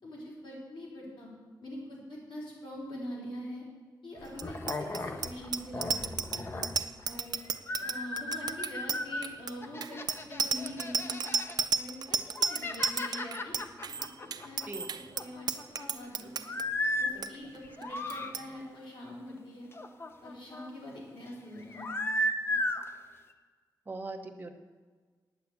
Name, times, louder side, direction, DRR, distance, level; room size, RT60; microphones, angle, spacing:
voice 1, 0.0-1.3 1.6-3.6 4.0-6.0 6.3-6.7 7.1-7.3 7.8-11.2 11.7-13.5 14.0-15.5 15.8-16.5 17.0-19.7 20.2-21.9 22.5-22.6, left 1 dB, 85° left, -4 dB, 4.3 m, -44 dB
sound 1, 4.2-7.2 7.7-9.3 9.6-11.6 12.1-14.9 15.1-15.9 16.4-17.1 17.6-18.3 19.7-20.7 21.6-22.9, left 1 dB, 30° left, 0.7 m, -35 dB
Bicycle bell, 4.3-16.6 17.0-17.3 17.5-17.8 18.1-18.4, right 5 dB, 60° right, 0.5 m, -33 dB
voice 2, 23.9-24.5, right 2 dB, 25° right, 2 dB, 1.0 m, -40 dB
9.3 x 8.5 x 8.3 m, 1.5 s
wide cardioid pair, 170°, 8 cm